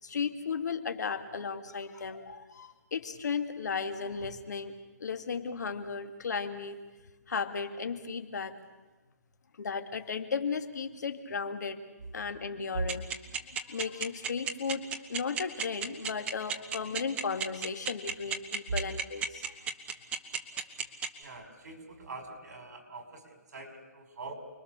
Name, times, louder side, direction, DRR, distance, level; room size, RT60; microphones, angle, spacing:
voice 1, 0.0-4.7 5.0-6.8 7.3-8.6 9.6-11.8 12.1-13.1 13.7-19.5, left 5 dB, 70° left, 8 dB, 2.5 m, -35 dB
sound 1, 12.9-21.1, right 7 dB, 10° right, 1.2 m, -32 dB
voice 2, 21.2-24.3, right 3 dB, 60° right, 4 dB, 6.2 m, -40 dB
29.5 x 22.0 x 6.8 m, 1.2 s
hypercardioid pair, 165°, 10 cm